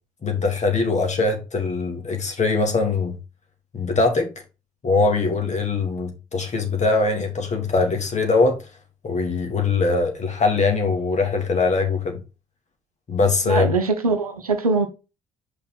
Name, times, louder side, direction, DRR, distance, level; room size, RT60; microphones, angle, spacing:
voice 1, 0.2-3.2 3.7-4.3 4.8-8.6 9.0-12.2 13.1-13.7, left 3 dB, 40° left, 2.7 m, -22 dB
voice 2, 13.5-14.9, right 4 dB, 90° right, 0.8 m, -22 dB
6.7 x 5.5 x 4.0 m
figure-of-eight pair, 45°, 18 cm